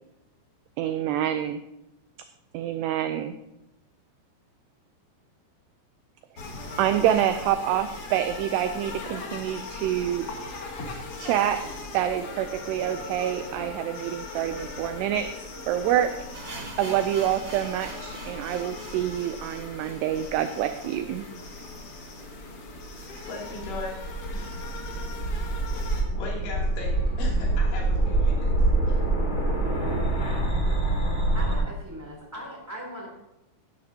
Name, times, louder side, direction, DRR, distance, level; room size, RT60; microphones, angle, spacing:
voice 1, 0.8-1.6 2.5-3.4 6.8-10.3 11.2-11.6 11.9-15.3 15.7-16.1 16.4-21.3, right 11 dB, 85° right, 9 dB, 2.4 m, -27 dB
sound 1, 6.4-26.0, left 3 dB, 55° left, 1.6 m, -39 dB
sound 2, 16.3-22.2 22.5-22.6 22.8-22.9 23.5-23.6, right 3 dB, 50° right, 1.6 m, -44 dB
sound 3, 23.2-31.5, right 2 dB, 25° left, 2.3 m, -25 dB
voice 2, 23.3-24.5 25.2-25.5 26.2-28.5 28.9-29.0, left 2 dB, 90° left, -3 dB, 5.4 m, -38 dB
voice 3, 31.3-33.1, equal, 5° right, -1 dB, 2.1 m, -39 dB
16.5 x 12.0 x 2.8 m, 0.91 s
omnidirectional pair, 5.4 m